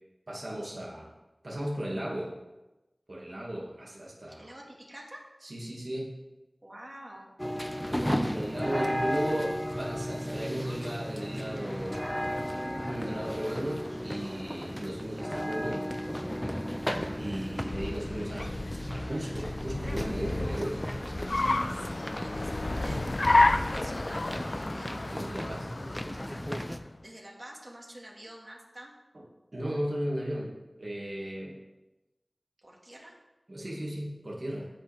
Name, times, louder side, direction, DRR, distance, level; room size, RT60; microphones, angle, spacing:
voice 1, 0.3-1.1 1.4-2.3 3.1-4.5 5.4-6.2 7.9-12.0 12.8-15.8 16.6-16.7 17.2-18.5 18.9-20.8 22.8-23.0 25.1-25.7 29.5-31.5 33.5-34.7, right 1 dB, 60° right, -4 dB, 2.5 m, -35 dB
voice 2, 4.3-5.3 6.6-7.3 17.2-17.6 21.7-25.0 26.7-28.9 32.6-33.2, right 1 dB, 40° right, -2 dB, 2.3 m, -48 dB
sound 1, 7.4-26.8, equal, 10° left, 0.7 m, -35 dB
Car, 17.4-26.9, left 2 dB, 70° left, 0.4 m, -31 dB
15.5 x 5.3 x 3.7 m, 1.0 s
wide cardioid pair, 40°, 0 cm